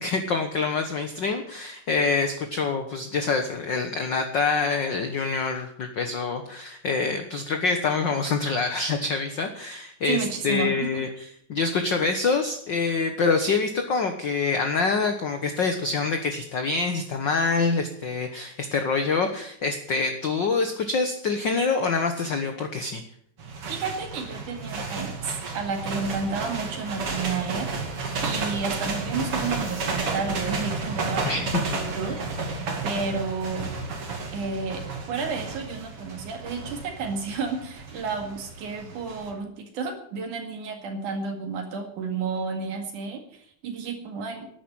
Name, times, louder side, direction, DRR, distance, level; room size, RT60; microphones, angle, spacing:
voice 1, 0.0-11.1 11.5-23.0 31.2-31.6 32.1-32.2, left 4 dB, 55° left, 6 dB, 1.2 m, -26 dB
voice 2, 10.1-11.0 23.7-27.7 28.2-33.7 34.3-44.5, right 4 dB, 75° right, 4 dB, 3.5 m, -31 dB
sound 1, 23.4-39.3, right 4 dB, 45° right, 3.1 m, -32 dB
12.5 x 10.0 x 8.8 m, 0.66 s
omnidirectional pair, 3.7 m